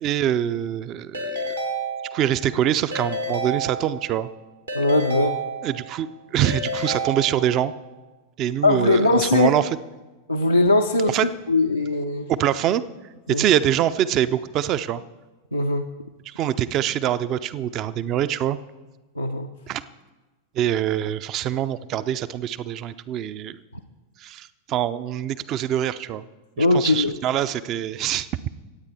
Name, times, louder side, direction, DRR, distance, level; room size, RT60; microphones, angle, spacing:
voice 1, 0.0-1.4 2.1-4.3 5.6-7.7 8.4-9.8 11.1-11.3 12.3-12.8 13.3-15.0 16.3-18.6 19.7-19.8 20.6-23.6 24.2-26.2 26.6-28.3, right 11 dB, 35° right, 14 dB, 0.6 m, -24 dB
Keyboard (musical) / Ringtone, 1.1-2.5 2.9-4.2 4.7-6.0 6.4-7.8, right 1 dB, 80° right, 2.4 m, -30 dB
voice 2, 4.7-5.3 8.6-9.5 10.3-11.2 11.5-12.3 13.3-13.4 15.5-15.8 19.2-19.5 26.6-27.2, left 2 dB, 85° left, 2 dB, 0.7 m, -20 dB
25.5 x 8.8 x 4.3 m, 1.2 s
figure-of-eight pair, 90°, 0 cm